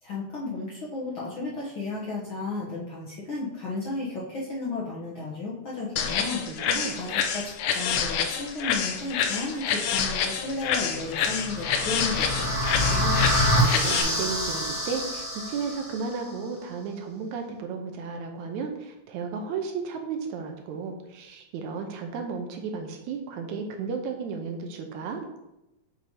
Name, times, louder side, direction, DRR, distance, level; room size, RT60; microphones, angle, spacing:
voice 1, 0.0-6.7 6.9-12.5, left 3 dB, 70° left, -6 dB, 1.2 m, -33 dB
sound 1, 6.0-14.0, left 7 dB, 85° left, 2.3 m, -27 dB
voice 2, 6.5-7.0 12.8-25.2, right 5 dB, 75° right, 4 dB, 1.9 m, -34 dB
sound 2, 11.0-16.1, equal, 25° left, 0.7 m, -26 dB
7.5 x 5.1 x 2.8 m, 0.94 s
omnidirectional pair, 3.6 m